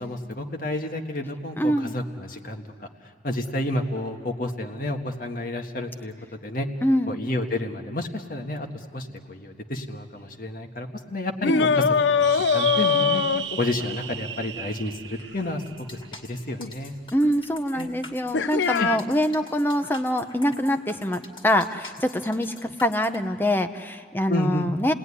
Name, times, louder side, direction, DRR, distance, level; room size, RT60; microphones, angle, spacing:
voice 1, 0.0-2.9 3.2-6.1 6.4-6.7 7.1-11.9 12.2-13.2 13.6-15.6 15.9-16.9 17.7-17.9 18.8-18.9 24.3-24.7, left 1 dB, 50° left, 4 dB, 1.6 m, -30 dB
voice 2, 1.6-1.9 6.8-7.1 11.5-11.7 17.1-24.9, equal, 10° left, 8 dB, 0.8 m, -24 dB
sound 1, 11.4-14.0 16.6-16.7 18.3-19.0, left 6 dB, 90° left, 0.6 m, -22 dB
sound 2, 12.2-17.0, right 9 dB, 90° right, 0.8 m, -34 dB
sound 3, 15.7-23.2, left 3 dB, 30° left, 2.3 m, -45 dB
30.0 x 19.0 x 9.9 m, 2.1 s
head